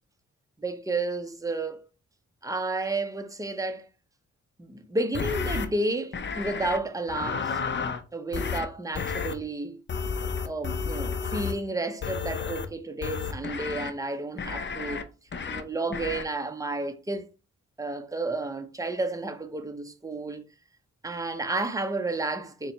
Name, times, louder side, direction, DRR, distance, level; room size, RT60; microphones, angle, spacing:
voice 1, 0.6-1.8 2.4-3.9 4.6-7.6 8.1-9.8 10.4-15.1 15.5-17.3 17.8-20.4 21.0-22.7, right 2 dB, 10° right, 0.6 m, -31 dB
sound 1, 5.1-5.7 6.1-6.8 7.1-8.0 8.3-8.7 8.9-9.3 9.9-11.6 12.0-12.7 13.0-13.9 14.4-15.0 15.3-15.6 15.9-16.2, left 5 dB, 40° left, 0.6 m, -31 dB
4.2 x 2.2 x 3.9 m
cardioid pair, 55°, 30 cm